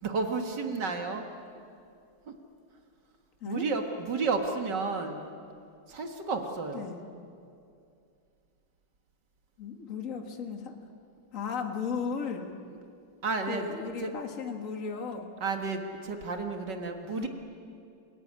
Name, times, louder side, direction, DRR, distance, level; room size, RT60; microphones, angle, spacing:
voice 1, 0.0-1.3 2.3-2.4 3.5-5.2 5.9-6.9 13.2-13.7 14.0-14.1 15.4-17.3, right 4 dB, 60° right, 5 dB, 2.3 m, -32 dB
voice 2, 9.6-10.7 11.3-12.5 13.5-15.3 17.1-17.3, left 6 dB, 45° left, 5 dB, 2.0 m, -35 dB
28.5 x 16.5 x 9.7 m, 2.5 s
omnidirectional pair, 2.1 m